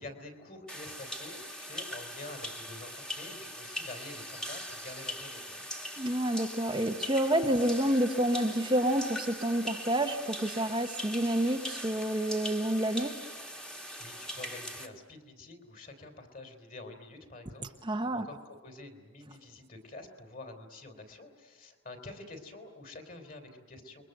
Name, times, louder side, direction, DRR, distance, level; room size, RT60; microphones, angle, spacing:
voice 1, 0.0-5.6 14.0-24.0, left 2 dB, 40° left, 5 dB, 3.5 m, -47 dB
sound 1, 0.7-14.9, equal, 5° left, 1.6 m, -41 dB
voice 2, 6.0-13.2 17.8-18.3, right 1 dB, 20° right, 4 dB, 0.9 m, -29 dB
28.5 x 22.5 x 7.9 m, 1.5 s
head